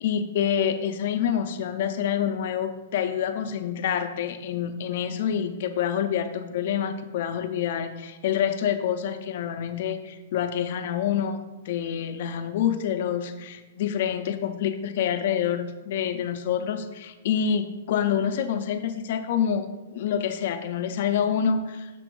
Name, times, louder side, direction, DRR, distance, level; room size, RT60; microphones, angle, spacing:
voice 1, 0.0-21.9, left 8 dB, 60° left, 8 dB, 0.6 m, -27 dB
6.8 x 3.0 x 5.3 m, 1.2 s
hypercardioid pair, 135°, 0 cm